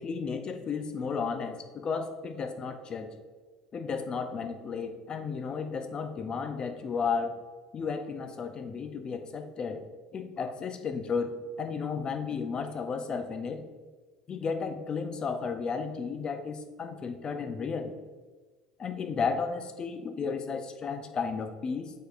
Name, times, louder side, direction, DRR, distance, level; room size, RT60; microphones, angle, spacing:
voice 1, 0.0-3.1 3.7-7.3 7.7-9.9 10.1-13.6 14.3-18.0 18.8-21.9, left 5 dB, 40° left, 8 dB, 0.7 m, -33 dB
7.9 x 4.8 x 2.5 m, 1.3 s
hypercardioid pair, 75°, 2 cm